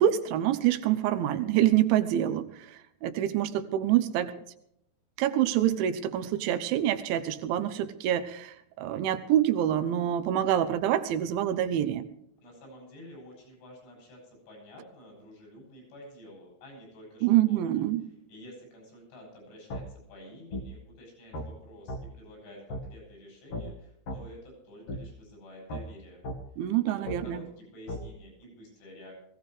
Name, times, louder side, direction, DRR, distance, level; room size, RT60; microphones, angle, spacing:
voice 1, 0.0-4.3 5.2-12.1 17.2-18.0 26.6-27.4, right 11 dB, 80° right, 10 dB, 3.2 m, -26 dB
voice 2, 12.4-17.8 18.3-26.2 26.9-29.1, equal, 80° left, -1 dB, 10.5 m, -50 dB
sound 1, 19.7-19.8 20.5-20.7 21.3-21.5 21.9-22.0 22.7-22.8 23.5-23.6 24.1-24.2 24.9-25.0 25.7-25.8 26.2-26.4 27.1-27.2 27.9-28.0, left 1 dB, 60° left, 1.6 m, -35 dB
20.5 x 16.5 x 3.3 m, 0.77 s
omnidirectional pair, 5.4 m